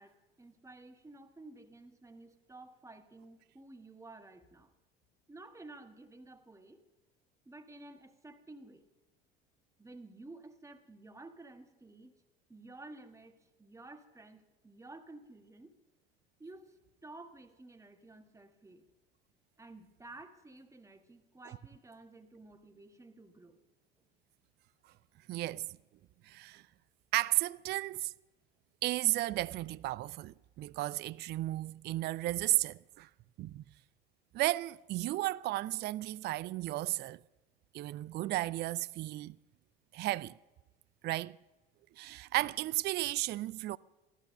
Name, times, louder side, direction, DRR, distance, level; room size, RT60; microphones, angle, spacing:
voice 1, 0.0-4.7 5.3-6.8 7.4-8.9 9.8-12.1 12.5-15.8 16.4-16.8 17.0-18.9 19.6-23.6, right 2 dB, 10° right, 1.5 m, -53 dB
voice 2, 25.3-25.7 26.3-26.6 27.1-28.1 28.8-33.1 33.4-33.6 34.3-37.2 37.7-39.4 39.9-40.3 41.0-41.4 42.0-43.8, right 17 dB, 35° right, 0.4 m, -34 dB
15.0 x 12.5 x 6.4 m
figure-of-eight pair, 65°, 29 cm